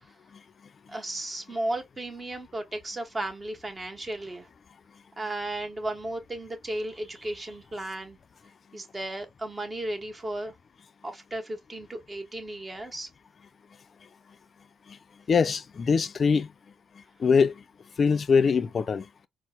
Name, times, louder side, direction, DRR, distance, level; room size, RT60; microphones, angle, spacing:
voice 1, 0.9-4.5 5.2-8.2 8.7-10.5 11.0-13.1, right 1 dB, 25° right, 0.9 m, -34 dB
voice 2, 15.3-16.5 17.2-17.5 18.0-19.0, left 5 dB, 45° left, 0.4 m, -22 dB
4.4 x 2.0 x 2.3 m
cardioid pair, 90°, 0 cm